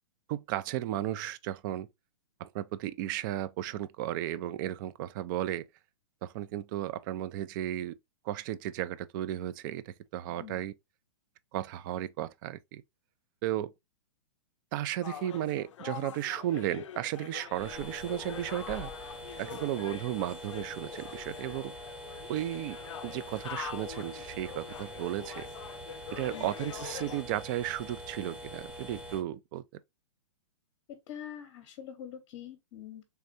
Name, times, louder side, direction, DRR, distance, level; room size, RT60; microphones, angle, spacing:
voice 1, 0.3-1.9 2.4-5.7 6.2-8.0 8.2-10.7 11.5-12.8 13.4-13.7 14.7-18.9 19.4-21.7 22.3-25.5 26.1-29.6, right 13 dB, 40° right, 0.4 m, -34 dB
voice 2, 10.3-10.6 26.3-26.5 30.9-33.0, left 9 dB, 45° left, 0.8 m, -45 dB
sound 1, 15.0-27.2, left 10 dB, 70° left, 0.4 m, -44 dB
sound 2, 17.5-29.2, equal, 10° right, 0.9 m, -44 dB
3.4 x 3.2 x 2.5 m
hypercardioid pair, 120°, 16 cm